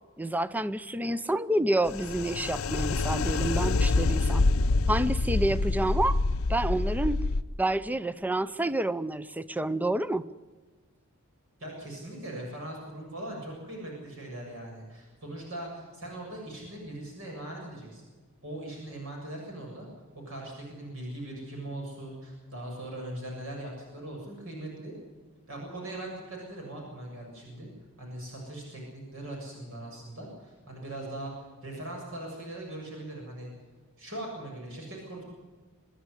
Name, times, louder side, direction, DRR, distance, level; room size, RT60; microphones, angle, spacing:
voice 1, 0.2-4.5 4.9-6.2 6.5-7.2 7.6-10.2, right 1 dB, 10° right, 16 dB, 0.6 m, -28 dB
sound 1, 1.9-7.4, left 3 dB, 70° left, 0.7 m, -26 dB
voice 2, 11.6-18.0 18.4-19.9 20.1-24.9 25.5-27.7 28.0-33.5 34.0-35.2, right 1 dB, 65° right, -1 dB, 7.3 m, -40 dB
25.5 x 11.0 x 9.8 m, 1.4 s
head